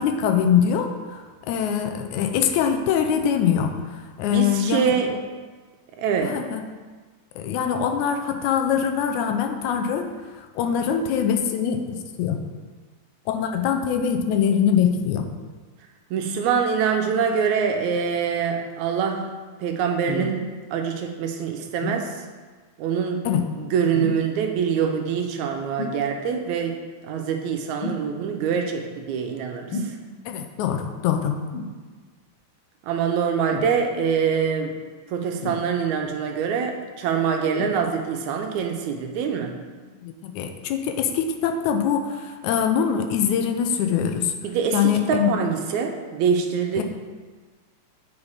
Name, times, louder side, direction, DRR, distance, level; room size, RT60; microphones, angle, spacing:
voice 1, 0.0-4.9 6.2-6.7 7.4-10.1 10.6-12.4 13.3-15.3 23.3-23.4 30.3-31.4 40.0-44.3 44.7-45.3 46.8-46.9, left 8 dB, 80° left, 5 dB, 2.0 m, -23 dB
voice 2, 4.3-5.1 6.0-6.4 16.1-19.3 19.6-22.2 22.8-23.2 23.6-26.8 27.0-30.0 32.9-34.7 35.1-39.5 44.4-46.8, right 6 dB, 75° right, 4 dB, 2.0 m, -24 dB
sound 1, 20.1-20.4 21.8-22.1 23.9-24.3 25.8-26.0 27.8-28.1 29.7-30.0 31.5-31.8 33.5-33.7 35.4-36.0 37.5-37.8 38.6-38.7, left 2 dB, 65° left, 1.4 m, -31 dB
8.5 x 5.2 x 4.8 m, 1.4 s
omnidirectional pair, 3.5 m